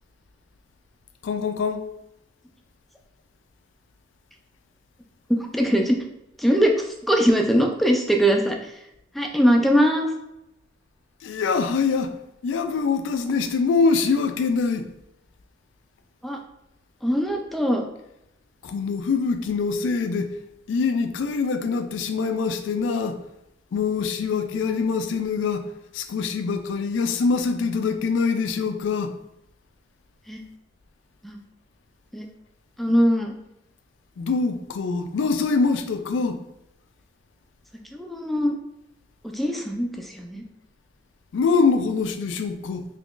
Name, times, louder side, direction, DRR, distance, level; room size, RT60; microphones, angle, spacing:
voice 1, 1.2-1.8 11.2-12.1 12.4-14.9 18.6-20.4 20.7-23.2 23.7-25.7 25.9-29.1 34.2-36.4 41.3-42.8, left 4 dB, 75° left, 0.3 m, -24 dB
voice 2, 5.3-6.0 6.4-6.7 7.1-8.6 9.2-10.1 16.2-16.4 17.0-17.8 30.3-30.4 31.2-31.4 32.1-32.3 32.8-33.3 37.9-38.6 39.3-40.4, equal, ahead, 0.4 m, -21 dB
3.7 x 2.9 x 2.4 m
head